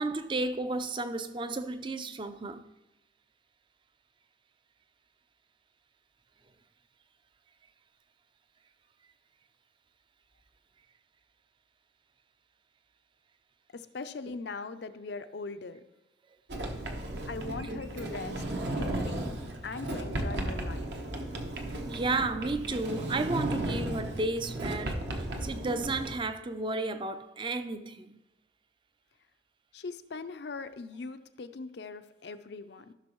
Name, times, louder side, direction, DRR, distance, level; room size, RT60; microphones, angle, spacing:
voice 1, 0.0-2.7 17.7-17.8 21.9-28.2, right 2 dB, 25° right, 0.4 m, -33 dB
voice 2, 13.7-15.8 17.3-19.3 19.6-20.9 29.7-32.9, left 4 dB, 65° left, 0.5 m, -41 dB
Sliding door, 16.5-26.1, right 1 dB, 70° right, 1.0 m, -35 dB
14.5 x 6.1 x 3.1 m
head